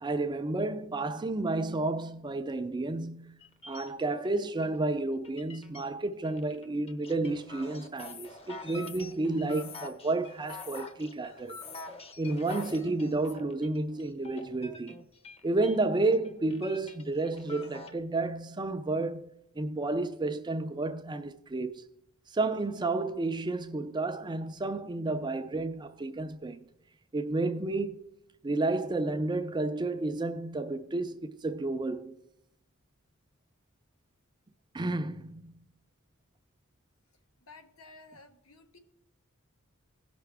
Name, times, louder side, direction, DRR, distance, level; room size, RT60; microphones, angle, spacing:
voice 1, 0.0-3.4 3.7-11.6 12.2-15.0 15.4-21.8 22.3-26.6 27.1-28.1 28.4-32.2 34.7-35.6, right 2 dB, 20° right, 0.5 m, -31 dB
sound 1, 3.4-4.9 5.2-5.9 6.2-15.8 16.1-18.0, left 2 dB, 30° left, 0.8 m, -47 dB
sound 2, 8.0-8.3 8.7-10.0 10.5-10.9 11.5-11.9 12.4-12.8 13.2-13.3, left 7 dB, 70° left, 0.8 m, -48 dB
voice 2, 37.4-38.8, left 3 dB, 85° left, 1.2 m, -53 dB
17.0 x 5.9 x 3.4 m
head